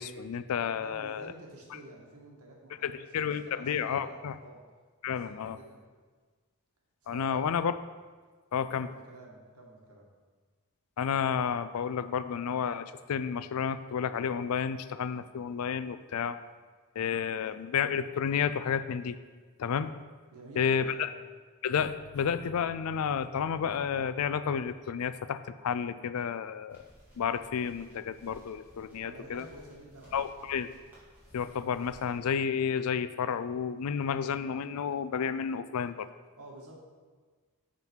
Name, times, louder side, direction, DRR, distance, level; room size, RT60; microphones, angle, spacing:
voice 1, 0.0-1.3 2.8-4.3 5.0-5.6 7.1-7.7 8.5-8.9 11.0-16.4 17.0-19.2 19.6-19.9 20.6-21.1 21.6-26.8 27.2-29.5 30.1-30.7 31.3-36.1, left 7 dB, 80° left, 13 dB, 0.4 m, -31 dB
voice 2, 0.8-4.6 5.1-5.8 7.0-7.5 8.7-10.1 20.3-21.2 29.0-30.5 36.4-36.8, right 1 dB, 80° right, -1 dB, 1.6 m, -49 dB
sound 1, 26.7-32.2, equal, 10° right, 2.5 m, -58 dB
11.0 x 3.8 x 4.6 m, 1.5 s
head